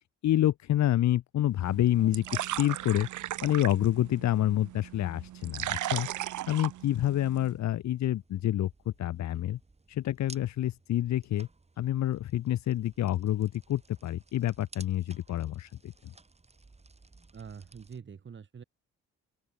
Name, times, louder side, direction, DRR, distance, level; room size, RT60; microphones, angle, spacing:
voice 1, 0.2-3.1 3.4-8.7 9.0-9.6 9.9-11.5 11.8-15.9, left 13 dB, 65° left, 1.0 m, -28 dB
sound 1, 1.3-18.0, right 3 dB, 20° right, 3.9 m, -57 dB
sound 2, 1.6-7.5, right 13 dB, 75° right, 1.9 m, -37 dB
voice 2, 17.3-18.6, right 6 dB, 40° right, 2.4 m, -45 dB
open air
cardioid pair, 90°, 30 cm